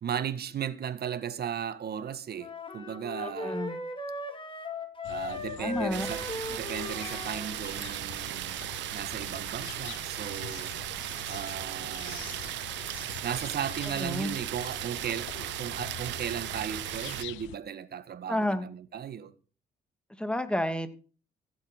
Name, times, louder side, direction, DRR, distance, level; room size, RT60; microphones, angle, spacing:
voice 1, 0.0-3.6 5.1-8.6 8.9-10.8 11.3-12.4 13.2-19.3, right 8 dB, 55° right, 1.5 m, -36 dB
sound 1, 2.4-7.6, left 2 dB, 25° left, 3.4 m, -38 dB
voice 2, 3.2-3.8 5.6-6.1 14.0-14.3 18.3-18.7 20.2-20.9, left 1 dB, 5° left, 2.5 m, -30 dB
sound 2, 5.0-17.6, left 15 dB, 85° left, 0.8 m, -45 dB
sound 3, 5.9-17.2, right 15 dB, 75° right, 0.7 m, -37 dB
15.0 x 8.1 x 6.4 m
supercardioid pair, 60°, 19 cm